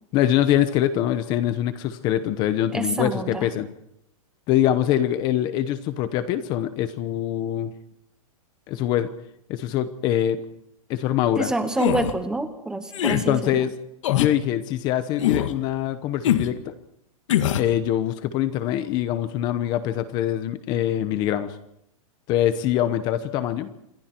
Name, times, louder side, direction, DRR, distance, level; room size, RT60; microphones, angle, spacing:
voice 1, 0.1-3.7 4.5-7.7 8.7-9.1 9.5-10.4 10.9-11.5 13.0-13.7 14.1-16.7 17.5-21.5 22.3-23.7, left 11 dB, 25° left, 12 dB, 0.9 m, -24 dB
voice 2, 2.7-3.5 11.4-13.6, right 2 dB, 5° right, 9 dB, 1.1 m, -27 dB
sound 1, 11.8-12.1 12.9-13.2 14.0-14.3 15.2-15.5 16.2-16.5 17.3-17.7, left 11 dB, 60° left, 1.9 m, -22 dB
28.0 x 22.5 x 4.5 m, 0.76 s
supercardioid pair, 170°, 18 cm